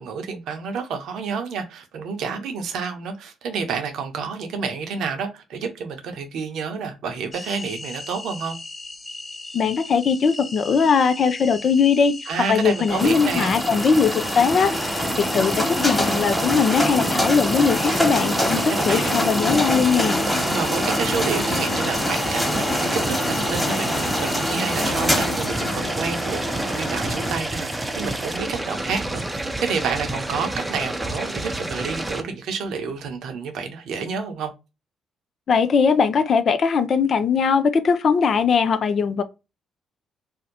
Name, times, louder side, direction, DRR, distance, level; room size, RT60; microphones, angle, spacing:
voice 1, 0.0-8.6 12.3-13.6 18.5-19.1 20.5-34.5, right 5 dB, 65° right, 0.7 m, -29 dB
sound 1, 7.3-24.9, left 3 dB, 30° left, 0.8 m, -37 dB
voice 2, 9.5-12.1 12.5-20.2 35.5-39.2, left 6 dB, 50° left, 0.4 m, -20 dB
sound 2, 12.9-27.3, equal, 5° left, 1.3 m, -25 dB
sound 3, 13.0-32.2, right 1 dB, 15° right, 0.6 m, -29 dB
2.6 x 2.1 x 3.9 m
hypercardioid pair, 50°, 0 cm